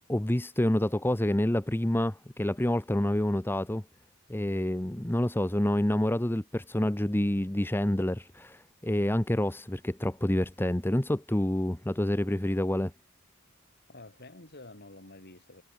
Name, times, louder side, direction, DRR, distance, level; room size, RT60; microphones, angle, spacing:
voice 1, 0.1-3.8 4.3-12.9, left 1 dB, 10° left, 0.8 m, -28 dB
voice 2, 13.9-15.6, left 2 dB, 50° left, 6.1 m, -49 dB
head